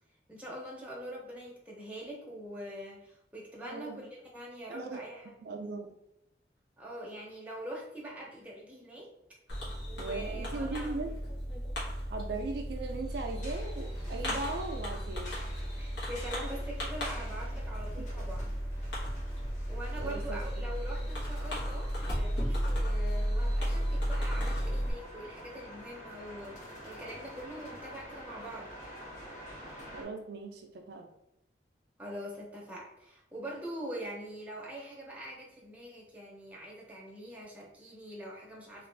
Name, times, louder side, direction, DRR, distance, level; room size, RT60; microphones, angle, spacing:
voice 1, 0.3-5.3 6.8-9.1 9.6-11.0 15.8-19.0 19.7-28.7 32.0-38.9, right 1 dB, 10° right, -3 dB, 0.6 m, -44 dB
voice 2, 3.6-4.0 4.7-5.0 5.4-6.0 10.0-11.2 12.1-15.3 18.0-18.1 20.0-20.6 29.9-31.1, right 3 dB, 60° right, 4 dB, 0.3 m, -38 dB
Fireworks, 9.5-24.9, equal, 80° left, 1.1 m, -34 dB
sound 1, 13.1-30.0, equal, 40° left, 0.9 m, -49 dB
2.9 x 2.4 x 3.2 m, 0.84 s
head